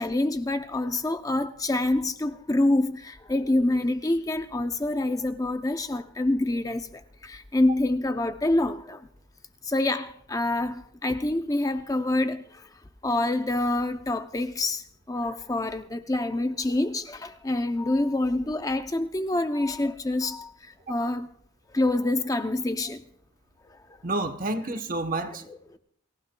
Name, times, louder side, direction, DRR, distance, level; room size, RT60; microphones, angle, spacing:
voice 1, 0.0-9.1 9.6-12.7 13.0-21.3 21.7-23.0 23.7-24.0 25.2-25.8, left 2 dB, 15° left, 0.5 m, -27 dB
voice 2, 24.0-25.5, right 2 dB, 45° right, 1.0 m, -29 dB
29.0 x 15.5 x 2.2 m
head